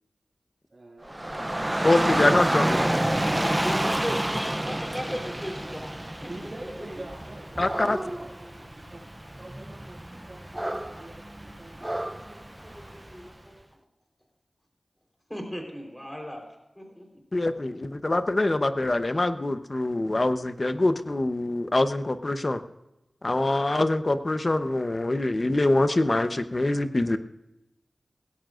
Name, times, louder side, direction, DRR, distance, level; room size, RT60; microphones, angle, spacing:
voice 1, 0.7-1.7 6.2-9.0 9.4-12.0, right 1 dB, 45° right, -7 dB, 6.3 m, -45 dB
Dog / Rain, 1.1-13.2, right 1 dB, 20° right, 0.6 m, -29 dB
voice 2, 1.8-2.8 3.4-3.5 7.6-8.0 17.3-22.6 23.2-27.2, left 2 dB, 40° left, 10 dB, 0.9 m, -24 dB
voice 3, 3.6-5.9 6.2-6.5 12.1-13.5 15.3-16.4 16.8-17.1, equal, 10° left, 2 dB, 4.1 m, -37 dB
19.5 x 17.0 x 2.6 m, 0.96 s
wide cardioid pair, 55°, 0 cm